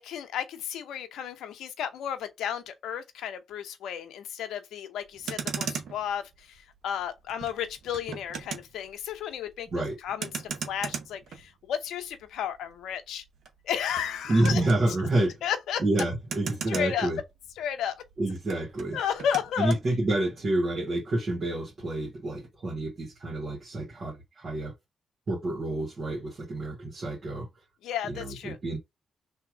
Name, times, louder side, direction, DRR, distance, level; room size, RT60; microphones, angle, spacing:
voice 1, 0.0-13.2 13.6-14.6 15.4-15.8 16.7-17.1 17.6-18.1 18.9-19.7 27.8-28.6, left 9 dB, 85° left, 0.7 m, -33 dB
Motor vehicle (road), 5.1-17.7 18.0-19.9, right 6 dB, 75° right, 0.9 m, -39 dB
voice 2, 14.3-15.3 15.8-17.2 18.2-19.0 19.6-24.7 25.3-27.5 28.1-28.8, right 2 dB, 55° right, 2.0 m, -28 dB
3.4 x 2.9 x 4.7 m
supercardioid pair, 50°, 0 cm